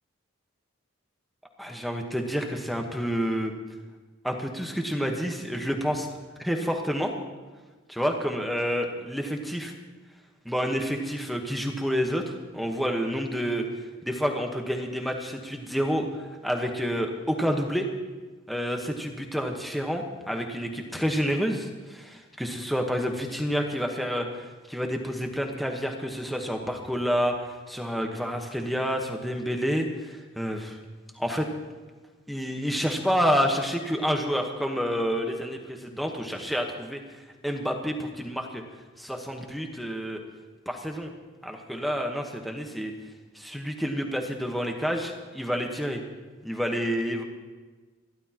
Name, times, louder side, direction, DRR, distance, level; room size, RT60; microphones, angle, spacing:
voice 1, 1.6-3.5 4.2-6.1 6.4-7.1 7.9-9.7 10.4-13.7 14.0-17.9 18.5-30.8 31.1-31.5 32.3-37.0 37.4-38.6 39.0-40.2 40.7-41.1 41.4-42.9 43.3-46.0 46.4-47.2, equal, ahead, 2 dB, 1.2 m, -29 dB
28.0 x 12.0 x 3.0 m, 1.3 s
head